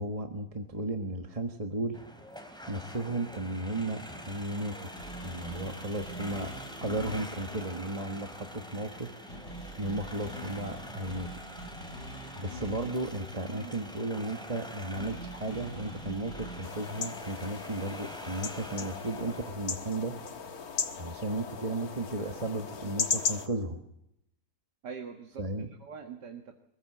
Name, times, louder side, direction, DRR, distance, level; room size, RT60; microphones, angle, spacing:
voice 1, 0.0-2.0 2.7-4.9 5.2-6.5 6.8-9.1 9.8-11.3 12.4-20.1 21.0-23.8 25.4-25.7, right 2 dB, 20° right, 4 dB, 1.4 m, -34 dB
sound 1, 1.9-19.5, equal, ahead, 2.8 m, -46 dB
sound 2, 5.0-19.1, equal, 30° left, 7.4 m, -46 dB
voice 2, 13.5-13.8 24.8-26.5, right 6 dB, 80° right, 4 dB, 2.2 m, -44 dB
sound 3, 16.6-23.5, left 5 dB, 60° left, 1.8 m, -36 dB
24.0 x 15.5 x 7.9 m, 0.81 s
omnidirectional pair, 1.8 m